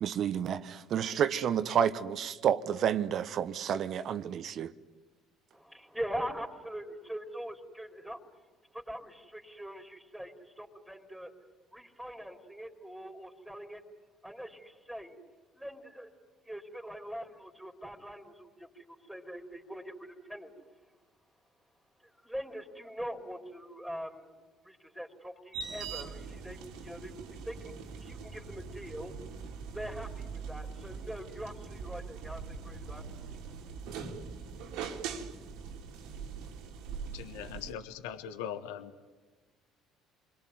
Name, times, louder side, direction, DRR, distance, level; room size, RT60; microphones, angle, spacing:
voice 1, 0.0-4.7, right 9 dB, 55° right, 1.2 m, -30 dB
voice 2, 5.5-8.2 8.7-11.3 11.7-13.8 14.2-15.2 15.5-16.1 16.5-20.5 22.0-24.3 24.6-27.1 27.4-27.7 28.0-29.1 29.7-33.0, equal, ahead, 3.8 m, -42 dB
sound 1, 25.5-37.7, right 5 dB, 70° right, 2.5 m, -42 dB
voice 3, 37.1-39.1, left 9 dB, 75° left, 1.3 m, -41 dB
28.5 x 22.0 x 9.5 m
hypercardioid pair, 60°, 0 cm